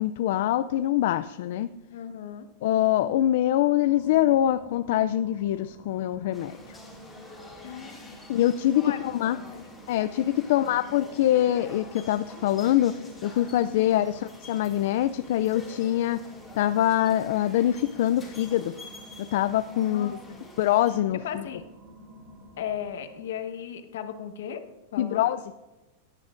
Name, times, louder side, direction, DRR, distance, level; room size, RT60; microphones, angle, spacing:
voice 1, 0.0-1.7 2.6-6.8 8.3-9.4 9.9-12.9 13.2-16.2 16.5-18.7 19.3-20.2 20.6-21.4 25.0-25.4, left 12 dB, 60° left, 11 dB, 0.3 m, -24 dB
voice 2, 1.9-2.4 7.6-8.2 8.8-9.7 10.1-10.8 13.7-14.0 18.2-18.3 19.9-20.4 21.2-21.6 22.6-24.6 24.9-25.3, left 9 dB, 80° left, 7 dB, 1.2 m, -37 dB
sound 1, 3.7-23.4, right 1 dB, 50° right, 2.6 m, -50 dB
sound 2, 6.3-21.0, left 2 dB, ahead, 2.2 m, -47 dB
17.0 x 9.7 x 2.6 m, 1.1 s
supercardioid pair, 160°, 0 cm